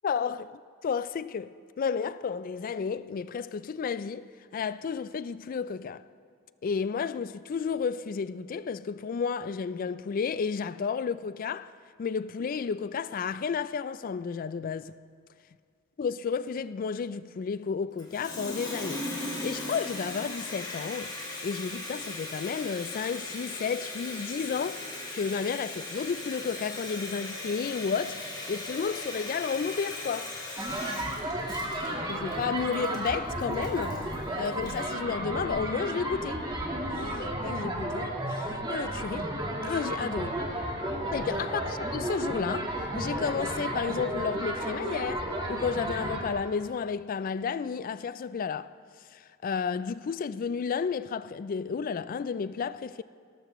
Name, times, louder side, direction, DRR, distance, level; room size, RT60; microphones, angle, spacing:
voice 1, 0.0-4.3 4.5-6.0 6.6-11.7 12.0-15.0 16.0-21.1 21.4-28.2 28.5-30.3 32.1-34.0 34.4-36.4 36.9-39.3 39.6-40.5 41.1-48.7 49.1-53.0, left 6 dB, 45° left, 0.3 m, -32 dB
Water tap faucet, 18.0-34.9, left 2 dB, 20° left, 2.4 m, -38 dB
sound 1, 30.6-46.3, right 1 dB, 20° right, 1.5 m, -33 dB
18.5 x 13.5 x 3.1 m
head